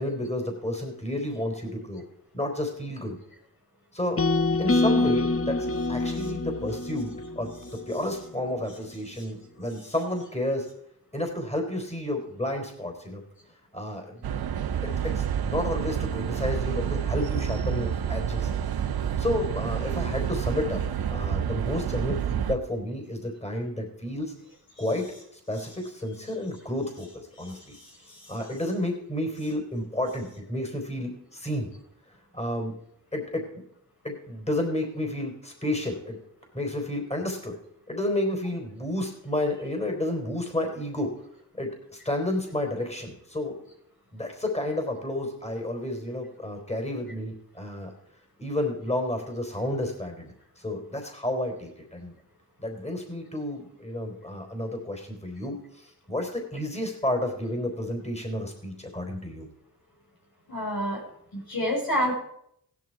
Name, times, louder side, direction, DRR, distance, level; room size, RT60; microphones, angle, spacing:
voice 1, 0.0-2.0 2.3-3.2 3.9-4.2 4.6-7.5 7.9-10.7 11.1-13.2 13.7-18.5 19.2-20.8 21.1-24.3 24.8-25.1 25.5-27.8 28.3-31.7 32.3-32.7 33.1-33.5 34.0-36.2 36.5-37.6 37.9-41.2 41.6-43.6 44.1-47.9 48.4-52.1 52.6-59.5, left 1 dB, 20° left, 4 dB, 3.9 m, -31 dB
sound 1, 4.2-8.3, left 2 dB, 40° left, 1.1 m, -26 dB
sound 2, 14.2-22.5, right 8 dB, 90° right, 0.7 m, -29 dB
voice 2, 27.4-28.4 60.5-61.0 61.3-62.1, equal, 75° left, 0 dB, 5.1 m, -30 dB
16.0 x 11.0 x 4.6 m, 0.71 s
cardioid pair, 50°, 36 cm